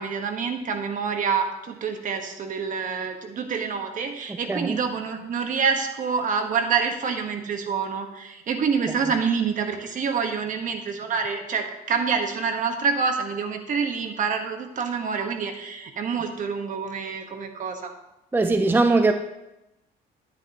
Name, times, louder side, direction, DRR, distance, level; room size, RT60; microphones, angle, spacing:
voice 1, 0.0-17.9, right 5 dB, 50° right, 5 dB, 1.4 m, -27 dB
voice 2, 4.4-4.8 18.3-19.1, right 3 dB, 10° right, 7 dB, 0.5 m, -20 dB
10.5 x 9.8 x 3.0 m, 0.91 s
cardioid pair, 110°, 17 cm